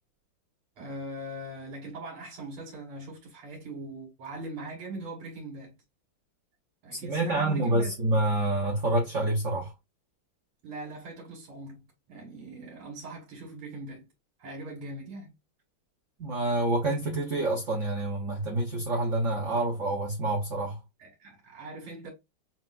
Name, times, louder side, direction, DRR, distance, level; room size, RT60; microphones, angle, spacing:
voice 1, 0.8-5.8 6.8-8.0 10.6-14.1 14.4-15.3 19.5-19.7 21.0-22.1, right 2 dB, 75° right, 2.2 m, -41 dB
voice 2, 6.9-9.7 16.2-20.8, right 2 dB, 45° right, 1.1 m, -27 dB
5.8 x 2.9 x 2.4 m
omnidirectional pair, 2.4 m